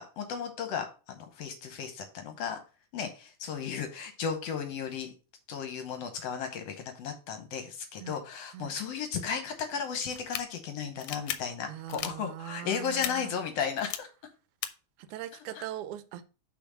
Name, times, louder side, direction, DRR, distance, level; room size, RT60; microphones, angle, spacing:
voice 1, 0.0-2.6 2.9-5.1 5.5-14.1 15.5-15.7, left 7 dB, 65° left, 1.8 m, -35 dB
sound 1, 10.1-10.4 11.0-11.4 11.9-12.1 13.0-13.1 13.8-14.0 14.6-14.7, left 12 dB, 85° left, 2.0 m, -34 dB
voice 2, 11.7-13.3 15.0-16.2, right 12 dB, 85° right, 2.1 m, -41 dB
5.8 x 4.2 x 6.1 m
omnidirectional pair, 3.4 m